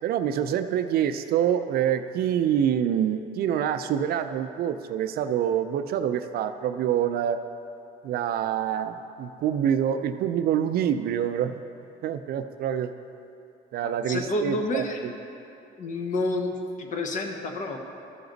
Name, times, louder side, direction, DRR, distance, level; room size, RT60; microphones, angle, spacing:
voice 1, 0.0-7.4 8.0-11.6 12.0-12.9 13.7-15.1, right 9 dB, 65° right, 9 dB, 0.5 m, -26 dB
voice 2, 14.1-15.0 15.8-16.5 16.8-17.8, left 2 dB, 50° left, 4 dB, 1.1 m, -29 dB
13.0 x 5.8 x 4.0 m, 2.7 s
cardioid pair, 110°, 17 cm